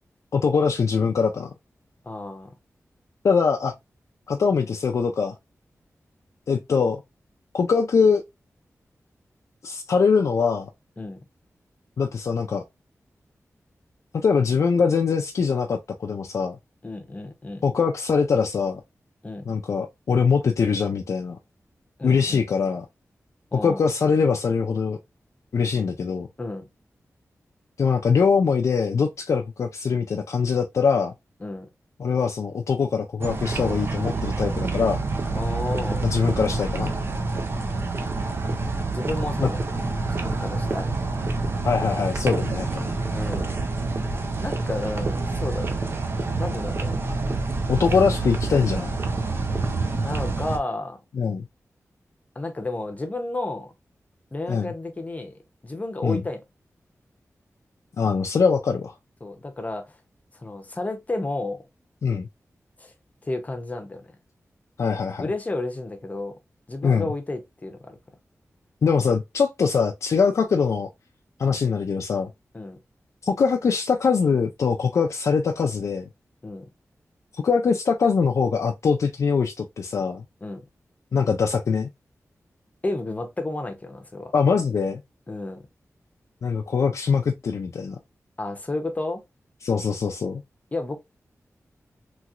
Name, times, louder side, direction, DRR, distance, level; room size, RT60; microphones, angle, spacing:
voice 1, 0.3-1.5 3.2-3.7 4.3-5.3 6.5-7.0 7.5-8.2 9.6-10.7 12.0-12.6 14.1-16.6 17.6-18.8 19.5-21.4 22.0-22.9 23.5-25.0 25.5-26.3 27.8-31.1 32.0-35.0 36.0-36.9 39.4-39.5 41.6-42.9 47.7-49.0 51.1-51.5 54.5-54.7 56.0-56.2 58.0-58.9 62.0-62.3 64.8-65.3 66.8-67.1 68.8-70.9 71.4-72.3 73.2-76.1 77.4-80.2 81.1-81.9 84.3-85.0 86.4-88.0 89.6-90.4, left 5 dB, 65° left, 0.4 m, -22 dB
voice 2, 2.0-2.5 11.0-11.2 16.8-17.6 19.2-19.5 22.0-22.4 23.5-23.8 26.4-26.7 31.4-31.7 35.3-36.1 38.9-39.7 40.1-40.9 43.1-43.5 44.4-45.9 46.4-47.0 50.0-51.0 52.4-53.7 54.3-55.3 55.6-56.4 59.2-60.0 60.3-61.6 62.8-62.9 63.2-64.1 65.2-66.3 66.7-68.0 72.5-72.8 76.4-76.7 80.4-80.6 82.8-84.3 85.3-85.6 88.4-89.2 90.7-91.0, left 2 dB, 25° left, 0.7 m, -31 dB
sound 1, 33.2-50.6, right 3 dB, 45° right, 0.6 m, -27 dB
3.0 x 2.9 x 2.4 m
wide cardioid pair, 130°, 6 cm